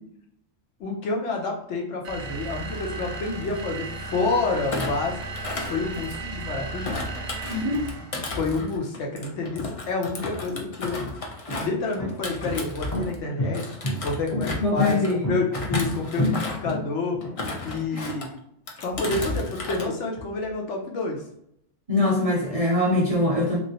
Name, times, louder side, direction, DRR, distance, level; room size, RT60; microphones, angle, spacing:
voice 1, 0.8-5.2 5.7-7.0 8.4-11.0 11.6-13.7 14.0-17.2 17.6-18.3 18.8-21.2, left 3 dB, 80° left, 1 dB, 1.0 m, -28 dB
sound 1, 2.0-8.2, right 3 dB, 75° right, 0.9 m, -35 dB
Thump thud, 4.6-6.4 6.8-13.2 13.5-15.1 15.5-16.8 17.2-18.3 18.7-19.9 20.2-20.5, left 2 dB, 55° left, 0.3 m, -34 dB
voice 2, 7.5-7.9 14.6-15.2 17.9-18.1 21.9-23.6, left 2 dB, 45° right, -3 dB, 0.5 m, -23 dB
sound 2, 10.0-10.1 10.8-17.3, left 1 dB, 20° left, 0.7 m, -29 dB
3.0 x 2.5 x 2.7 m, 0.73 s
omnidirectional pair, 1.2 m